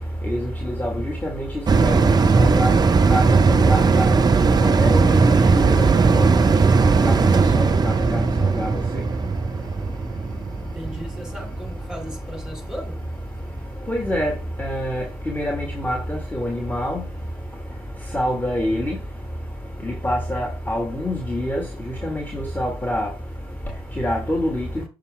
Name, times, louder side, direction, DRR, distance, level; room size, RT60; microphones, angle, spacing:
voice 1, 0.3-1.5 1.8-2.1 2.4-2.7 3.1-3.2 3.5-4.1 4.6-5.3 5.8-5.9 6.1-6.3 7.0-8.3 8.6-8.7 13.9-14.3 14.6-17.0 18.1-19.0 19.9-21.6 22.0-23.1 24.0-24.7, equal, 10° left, 1.7 m, -25 dB
sound 1, 1.7-12.4 12.8-12.9, right 4 dB, 25° right, 0.7 m, -18 dB
voice 2, 10.6-13.0, equal, 5° right, 2.9 m, -36 dB
6.8 x 5.0 x 3.4 m
figure-of-eight pair, 45°, 15 cm